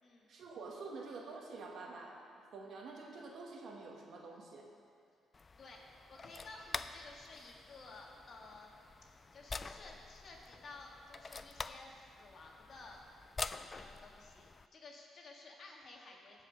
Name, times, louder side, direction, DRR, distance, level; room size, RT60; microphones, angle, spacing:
voice 1, 0.3-4.7, right 3 dB, 65° right, 0 dB, 1.6 m, -48 dB
sound 1, 5.3-14.7, left 4 dB, 30° left, 0.4 m, -47 dB
voice 2, 5.6-8.7 9.3-13.0 13.7-14.4 14.7-16.4, left 3 dB, 50° left, 0 dB, 1.8 m, -54 dB
16.0 x 5.5 x 5.2 m, 2.3 s
cardioid pair, 90°, 0 cm